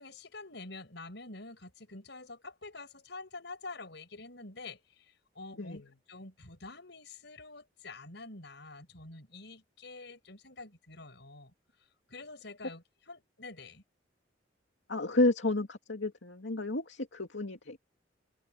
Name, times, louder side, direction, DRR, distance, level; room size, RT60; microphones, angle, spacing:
voice 1, 0.0-5.8 6.1-11.5 12.1-13.8, left 3 dB, 70° left, 7.8 m, -47 dB
voice 2, 5.5-5.8 14.9-17.8, left 2 dB, 85° left, 2.5 m, -31 dB
open air
head